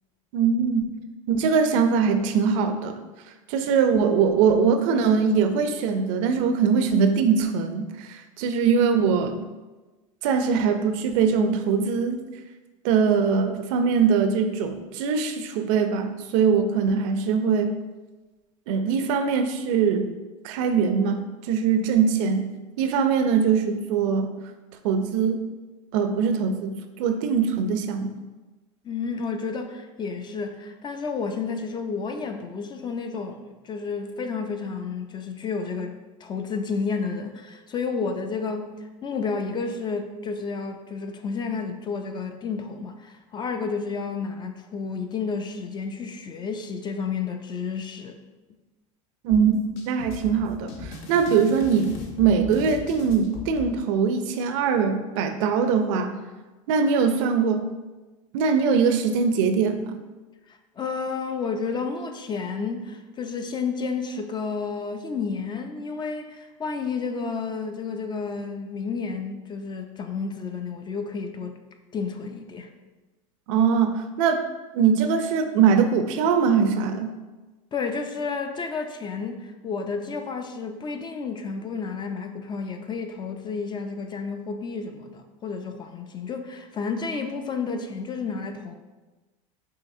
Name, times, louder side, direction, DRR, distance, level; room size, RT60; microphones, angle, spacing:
voice 1, 0.3-0.9 1.3-3.0 3.5-9.5 10.2-12.2 12.8-17.7 18.7-20.1 20.4-22.5 22.8-24.3 24.8-25.4 25.9-28.2 49.2-49.6 49.9-56.2 56.7-57.6 58.3-60.0 73.5-74.4 74.7-77.1, right 6 dB, 65° right, 8 dB, 0.5 m, -22 dB
voice 2, 28.8-48.2 60.5-71.6 71.9-72.7 77.7-88.7, left 5 dB, 25° left, 6 dB, 0.4 m, -31 dB
sound 1, 49.3-53.7, left 4 dB, 65° left, 0.8 m, -38 dB
5.5 x 2.9 x 2.7 m, 1.2 s
hypercardioid pair, 100°, 17 cm